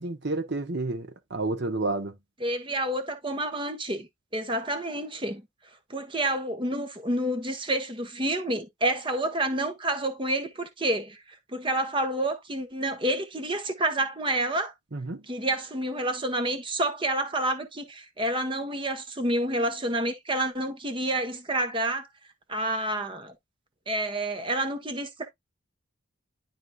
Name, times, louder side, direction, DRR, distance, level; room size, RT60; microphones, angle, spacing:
voice 1, 0.0-2.2 14.9-15.2, right 2 dB, 55° right, 1.0 m, -30 dB
voice 2, 2.4-4.1 4.3-5.4 5.9-11.2 11.5-14.7 15.3-22.1 22.5-23.3 23.9-25.3, right 1 dB, 25° right, 1.1 m, -29 dB
11.0 x 4.1 x 2.3 m
head